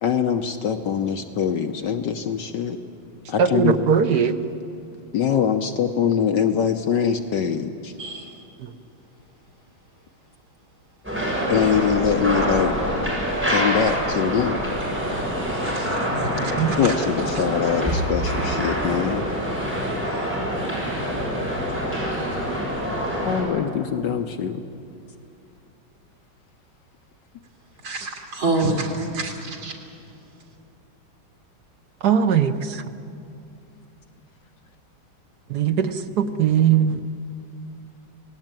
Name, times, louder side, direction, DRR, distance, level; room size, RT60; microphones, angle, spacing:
voice 1, 0.0-2.8 3.3-3.8 5.1-7.9 11.5-12.7 13.5-14.6 16.8-19.2 23.2-24.6, left 7 dB, 65° left, 7 dB, 1.5 m, -23 dB
voice 2, 3.4-4.4 8.6-8.7 16.6-16.8 32.0-32.8 35.5-37.0, right 8 dB, 60° right, 8 dB, 1.4 m, -20 dB
voice 3, 8.0-8.4 15.5-17.0 17.3-17.7 27.8-29.7, right 2 dB, 85° right, 1 dB, 3.8 m, -28 dB
sound 1, 11.0-23.4, equal, 5° right, 7.3 m, -25 dB
27.5 x 19.0 x 9.0 m, 2.6 s
omnidirectional pair, 2.2 m